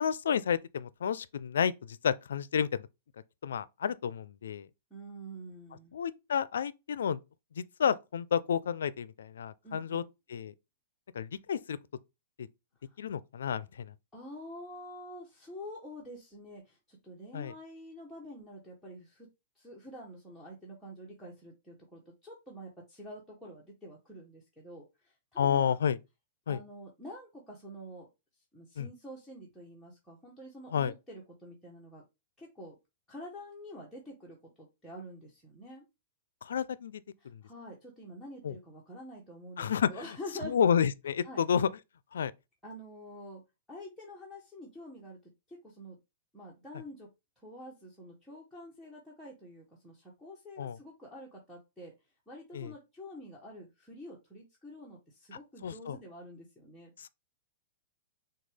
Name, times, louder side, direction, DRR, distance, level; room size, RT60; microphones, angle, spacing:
voice 1, 0.0-2.9 3.4-4.7 5.9-7.2 7.6-10.0 10.3-10.5 11.1-11.8 12.4-12.5 13.0-13.9 17.3-17.5 25.4-26.0 26.5-26.6 28.8-28.9 30.7-30.9 36.4-37.0 37.3-37.4 38.4-38.5 39.6-39.9 40.4-41.7 42.1-42.3 50.6-50.8 52.5-52.7 55.6-56.0 57.0-57.1, left 7 dB, 90° left, 0.4 m, -30 dB
voice 2, 4.9-6.0 9.6-10.1 12.8-13.0 14.1-19.3 19.6-25.7 26.5-28.1 28.5-32.0 32.4-32.8 33.1-35.8 37.2-40.6 41.2-41.4 42.6-43.4 43.7-46.0 46.3-47.1 47.4-51.9 52.3-56.9, equal, ahead, 1.0 m, -47 dB
6.3 x 2.3 x 3.3 m
hypercardioid pair, 145°, 0 cm